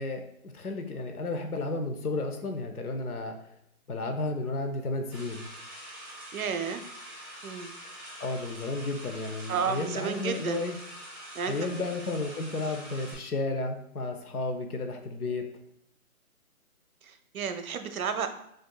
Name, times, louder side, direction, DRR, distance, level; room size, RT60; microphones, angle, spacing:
voice 1, 0.0-3.4 3.9-5.5 8.2-10.8 11.5-15.5, left 2 dB, 85° left, 6 dB, 0.9 m, -32 dB
sound 1, 5.1-13.1, right 1 dB, 15° left, 1.2 m, -45 dB
voice 2, 6.3-6.9 7.4-7.7 9.5-10.6 11.3-11.8 17.0-18.3, right 6 dB, 75° right, 8 dB, 0.6 m, -32 dB
6.3 x 2.7 x 2.2 m, 0.77 s
hypercardioid pair, 180°, 43 cm